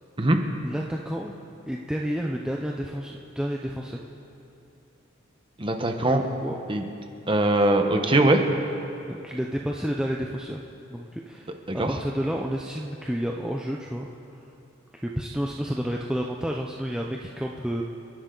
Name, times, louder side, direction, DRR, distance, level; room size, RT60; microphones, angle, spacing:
voice 1, 0.6-1.3 1.7-4.0 6.1-6.6 9.1-10.6 10.9-14.1 14.9-17.8, equal, 5° right, -1 dB, 0.6 m, -30 dB
voice 2, 5.6-6.2 6.7-6.8 7.3-8.4 11.7-11.9, right 1 dB, 25° right, 5 dB, 1.1 m, -21 dB
29.5 x 11.0 x 4.0 m, 2.7 s
head